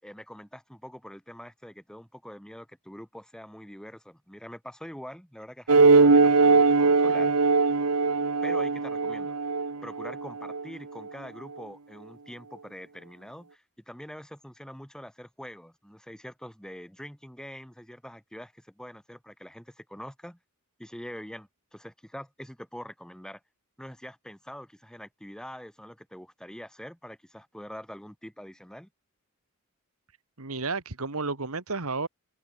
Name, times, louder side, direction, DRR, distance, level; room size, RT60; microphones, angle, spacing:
voice 1, 0.0-7.3 8.4-9.4 9.8-20.4 20.8-23.4 23.8-28.9, equal, 5° left, 6.5 m, -44 dB
sound 1, 5.7-10.6, right 4 dB, 90° right, 1.2 m, -21 dB
voice 2, 30.4-32.1, right 3 dB, 75° right, 1.9 m, -32 dB
head